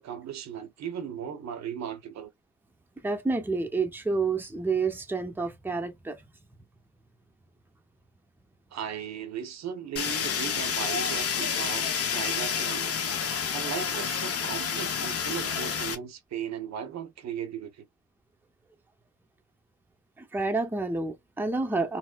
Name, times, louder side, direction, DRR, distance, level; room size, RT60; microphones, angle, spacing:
voice 1, 0.0-2.3 8.7-12.9 13.5-17.9, right 8 dB, 65° right, 0.9 m, -37 dB
voice 2, 3.0-6.3 20.2-22.0, right 3 dB, 5° right, 0.7 m, -29 dB
Fire, 10.0-16.0, left 7 dB, 50° left, 0.9 m, -29 dB
4.0 x 2.1 x 2.3 m
cardioid pair, 90°, 30 cm